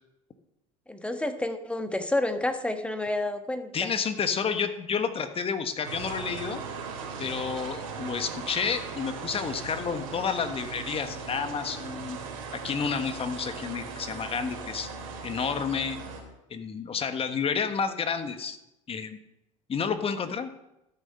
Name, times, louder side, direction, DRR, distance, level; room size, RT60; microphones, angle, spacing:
voice 1, 0.9-3.9, left 2 dB, 5° left, 7 dB, 1.4 m, -29 dB
voice 2, 3.7-6.6 7.2-12.2 12.5-14.9 15.2-16.0 16.5-18.6 18.9-19.2 19.7-20.5, left 6 dB, 35° left, 9 dB, 1.3 m, -30 dB
sound 1, 5.8-16.2, right 5 dB, 75° right, 2.9 m, -38 dB
13.0 x 6.6 x 5.6 m, 0.87 s
hypercardioid pair, 75°, 18 cm